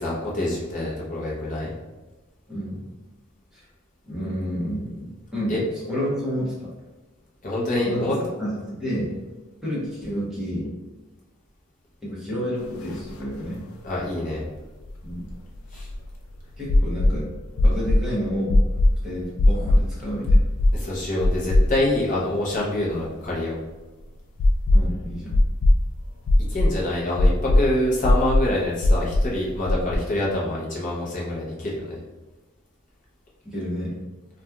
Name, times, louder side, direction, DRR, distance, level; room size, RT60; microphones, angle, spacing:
voice 1, 0.0-1.7 5.5-5.6 7.4-8.2 13.8-14.4 15.7-15.9 20.7-23.6 26.5-32.0, left 1 dB, 35° left, -5 dB, 0.6 m, -26 dB
voice 2, 2.5-2.9 3.5-3.6 4.0-6.7 7.8-8.1 8.4-9.2 9.6-10.7 12.0-13.6 15.0-15.3 16.6-17.3 17.6-18.7 19.0-20.5 24.7-25.4 29.7-29.8 33.4-34.0, equal, ahead, -9 dB, 0.8 m, -30 dB
sound 1, 12.9-13.0 13.2-13.3 14.9-16.1 16.7-17.2 17.6-18.1 18.5-19.0 19.4-19.8 20.3-20.8 21.2-22.0 22.3-22.4 24.4-25.0 25.3-25.8 26.3-26.7 27.2-27.6 28.0-28.5 28.8-29.3 29.6-30.0, left 1 dB, 75° left, 0.3 m, -18 dB
2.8 x 2.3 x 2.3 m, 1.2 s
head